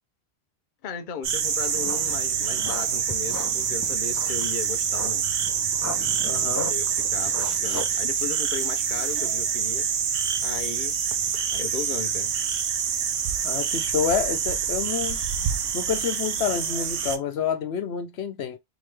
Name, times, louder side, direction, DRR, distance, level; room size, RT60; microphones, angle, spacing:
voice 1, 0.8-5.2 6.7-9.8 10.4-11.0 11.5-12.3, left 7 dB, 55° left, 0.7 m, -36 dB
sound 1, 1.2-17.2, right 7 dB, 70° right, 0.8 m, -26 dB
sound 2, 1.5-8.0, left 3 dB, 20° left, 0.5 m, -39 dB
voice 2, 6.2-6.7 13.4-15.2 15.7-18.6, left 7 dB, 85° left, 1.0 m, -28 dB
3.7 x 2.8 x 3.2 m
omnidirectional pair, 1.1 m